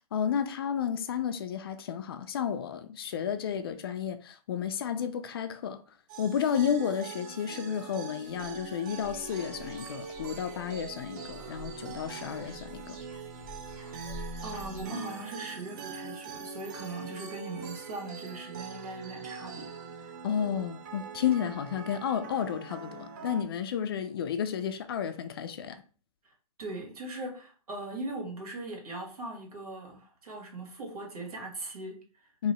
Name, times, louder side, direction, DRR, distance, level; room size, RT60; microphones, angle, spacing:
voice 1, 0.1-5.8 6.2-13.0 20.2-25.8 32.4-32.5, left 8 dB, 40° left, 0.4 m, -32 dB
sound 1, 6.1-23.4, right 5 dB, 30° right, 0.5 m, -43 dB
sound 2, 8.2-14.8, left 1 dB, 5° right, 1.1 m, -49 dB
voice 2, 14.4-19.7 26.2-26.3 26.6-32.3, right 2 dB, 75° right, 1.9 m, -40 dB
3.0 x 2.8 x 4.1 m
hypercardioid pair, 160°, 19 cm